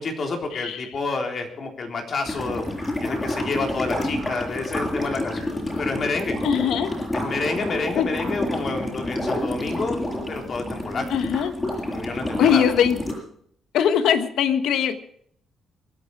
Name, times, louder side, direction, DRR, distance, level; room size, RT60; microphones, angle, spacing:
voice 1, 0.0-2.6 3.0-5.5 5.8-6.4 7.1-10.0 10.3-11.0 11.9-12.6, left 3 dB, 50° left, 3 dB, 3.6 m, -29 dB
sound 1, 2.2-13.1, left 1 dB, 20° left, 6.3 m, -29 dB
voice 2, 6.4-6.9 7.9-8.1 11.1-11.5 12.4-13.0 13.7-15.0, left 8 dB, 80° left, 10 dB, 1.3 m, -21 dB
23.5 x 9.6 x 4.8 m, 0.66 s
cardioid pair, 90°, 0 cm